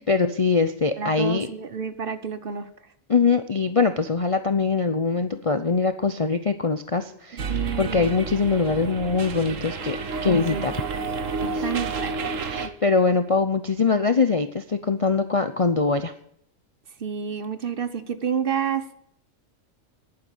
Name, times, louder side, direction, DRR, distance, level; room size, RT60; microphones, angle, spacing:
voice 1, 0.0-1.5 3.1-7.5 7.8-10.0 10.2-10.8 12.5-16.1, left 4 dB, 35° left, 9 dB, 0.6 m, -22 dB
voice 2, 1.0-2.7 7.3-8.1 10.2-10.7 11.4-12.2 17.0-19.0, right 7 dB, 45° right, 12 dB, 1.2 m, -29 dB
sound 1, 7.4-12.7, right 4 dB, 70° right, 1.6 m, -30 dB
11.0 x 9.4 x 8.3 m, 0.70 s
omnidirectional pair, 1.4 m